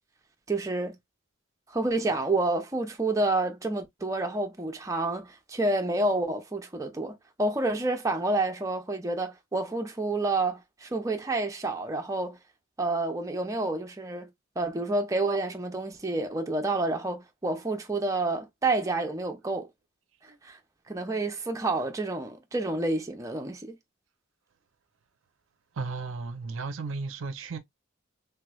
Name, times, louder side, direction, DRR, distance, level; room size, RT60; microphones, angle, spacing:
voice 1, 0.5-1.0 1.7-12.4 12.8-14.3 14.6-19.7 20.4-20.6 20.9-23.7, right 2 dB, 15° right, 0.5 m, -29 dB
voice 2, 25.8-27.6, right 4 dB, 65° right, 0.5 m, -34 dB
3.3 x 3.0 x 2.3 m
head